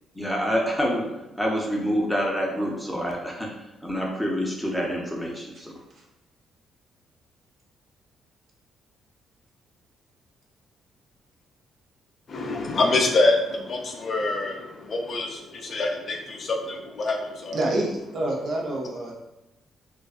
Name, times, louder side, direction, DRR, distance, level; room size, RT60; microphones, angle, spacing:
voice 1, 0.2-1.1 1.4-3.5 3.8-5.7, equal, ahead, -1 dB, 0.6 m, -27 dB
voice 2, 12.3-17.6, left 2 dB, 50° left, 2 dB, 0.4 m, -25 dB
voice 3, 17.5-19.1, right 1 dB, 65° right, -2 dB, 0.6 m, -27 dB
2.5 x 2.3 x 2.4 m, 0.96 s
cardioid pair, 90°, 0 cm